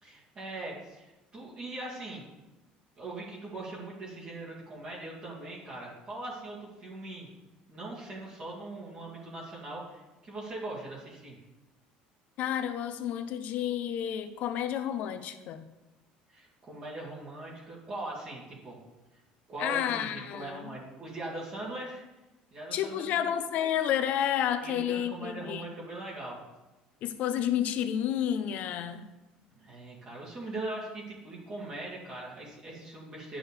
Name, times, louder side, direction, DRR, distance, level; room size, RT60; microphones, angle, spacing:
voice 1, 0.0-2.2 3.0-7.3 7.7-11.4 16.3-18.8 19.5-22.0 22.5-23.3 24.6-26.4 29.6-33.4, right 2 dB, 35° right, -5 dB, 2.2 m, -41 dB
voice 2, 12.4-15.6 19.6-20.7 22.7-25.7 27.0-29.0, left 10 dB, 55° left, 10 dB, 0.6 m, -30 dB
9.9 x 6.2 x 3.4 m, 1.0 s
cardioid pair, 155°, 3 cm